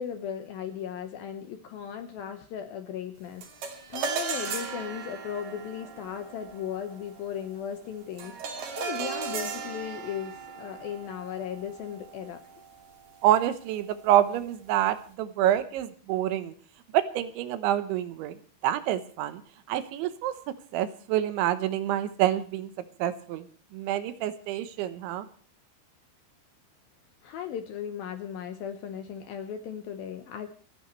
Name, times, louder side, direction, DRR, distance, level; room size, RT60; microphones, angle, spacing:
voice 1, 0.0-3.5 3.9-12.4 27.2-30.5, left 8 dB, 70° left, 7 dB, 2.3 m, -37 dB
sound 1, 3.4-12.9, right 6 dB, 60° right, 4.3 m, -37 dB
voice 2, 13.2-16.5 16.9-18.4 18.6-19.4 19.7-20.3 20.7-22.7 23.0-23.5 23.7-25.3, right 12 dB, 80° right, 12 dB, 3.3 m, -27 dB
28.5 x 10.0 x 3.2 m, 0.41 s
omnidirectional pair, 5.4 m